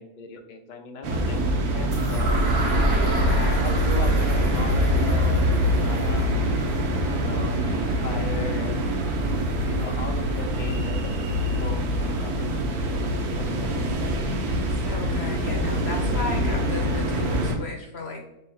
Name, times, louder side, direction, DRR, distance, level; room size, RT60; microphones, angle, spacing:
voice 1, 0.0-2.5 3.6-5.5 5.8-6.3 7.0-8.8 9.6-13.0 13.4-14.0, left 3 dB, 85° left, 2 dB, 0.4 m, -38 dB
sound 1, 1.0-17.6, equal, 80° right, 1.2 m, -24 dB
sound 2, 1.9-9.8, equal, 45° right, 1.0 m, -30 dB
voice 2, 2.8-3.7 14.7-18.2, left 3 dB, 60° left, 1 dB, 0.7 m, -35 dB
5.5 x 3.4 x 2.3 m, 0.90 s
omnidirectional pair, 1.6 m